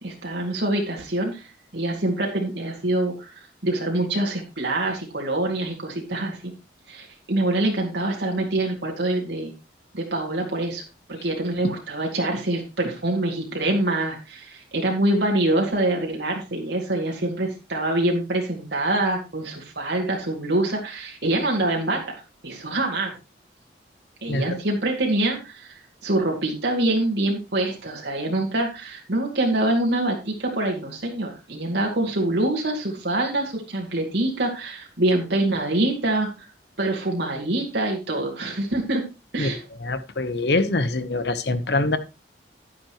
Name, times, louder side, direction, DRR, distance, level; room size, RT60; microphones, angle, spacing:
voice 1, 0.0-1.5 1.7-6.5 6.9-9.5 9.9-10.8 11.1-23.1 24.2-25.7 26.0-36.5 36.8-39.0 39.3-39.6, right 1 dB, 70° right, 0 dB, 2.3 m, -25 dB
voice 2, 24.3-24.6 39.4-39.5 39.8-42.0, left 2 dB, 65° left, 12 dB, 1.0 m, -24 dB
10.5 x 9.7 x 3.0 m, 0.29 s
head